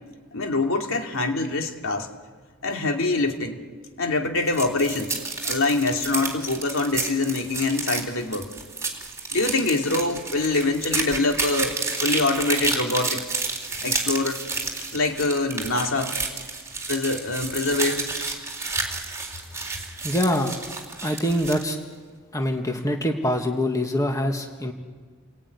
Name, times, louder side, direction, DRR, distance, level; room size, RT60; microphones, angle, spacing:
voice 1, 0.3-2.1 2.6-3.6 4.0-5.1 5.4-8.5 9.3-13.2 13.8-14.4 14.9-16.2 16.9-18.2, left 2 dB, 65° left, 3 dB, 2.8 m, -24 dB
sound 1, 4.4-21.7, right 3 dB, 15° right, 3.8 m, -30 dB
voice 2, 20.0-20.5 21.0-21.8 22.3-24.7, left 1 dB, 15° left, 4 dB, 1.8 m, -24 dB
30.0 x 20.5 x 9.7 m, 1.5 s
head